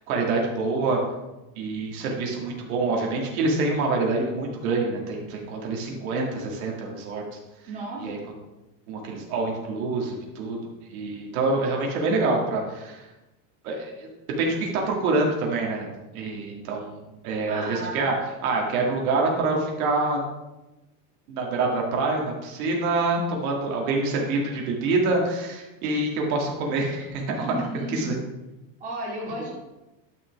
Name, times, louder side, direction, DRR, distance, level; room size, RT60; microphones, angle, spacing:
voice 1, 0.1-1.0 1.6-7.2 8.0-8.2 8.9-10.6 10.9-13.1 13.6-14.1 14.4-15.9 16.1-17.0 17.2-18.1 18.4-20.3 21.3-27.6 27.9-28.1, right 3 dB, 80° right, 0 dB, 2.2 m, -26 dB
voice 2, 7.7-8.2 17.5-18.1 27.4-28.1 28.8-29.5, right 1 dB, 20° right, -5 dB, 2.3 m, -33 dB
10.5 x 6.3 x 3.5 m, 1.0 s
cardioid pair, 175°, 42 cm